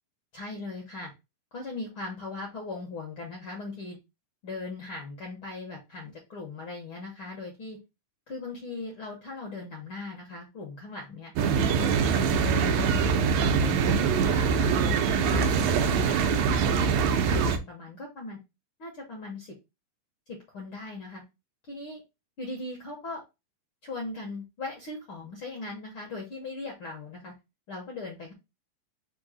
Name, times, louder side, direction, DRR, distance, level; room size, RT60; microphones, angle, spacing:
voice 1, 0.3-1.1 1.5-4.0 4.4-7.8 8.3-11.3 11.7-13.1 13.5-16.9 17.3-18.4 18.8-19.5 20.3-21.2 21.7-22.0 22.4-23.2 23.8-27.3 27.7-28.3, left 3 dB, 65° left, 0 dB, 1.3 m, -39 dB
sound 1, 11.4-17.6, right 6 dB, 75° right, 1.7 m, -24 dB
5.2 x 2.1 x 4.7 m, 0.24 s
omnidirectional pair, 3.8 m